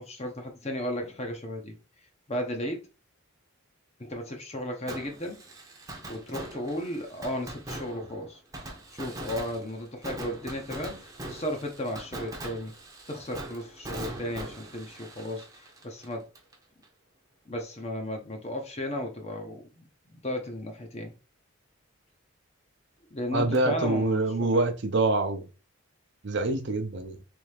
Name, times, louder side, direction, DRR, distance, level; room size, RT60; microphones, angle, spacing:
voice 1, 0.0-1.7 2.3-2.8 4.0-5.4 6.1-8.4 8.9-12.7 13.1-16.3 17.4-21.1 23.1-24.6, left 1 dB, 30° left, 0.9 m, -35 dB
Fireworks, 4.9-16.5 16.8-16.9 23.5-23.6, right 1 dB, 15° right, 0.8 m, -41 dB
voice 2, 23.3-25.5 26.2-27.2, right 2 dB, 55° right, 0.6 m, -26 dB
3.4 x 3.3 x 3.3 m
head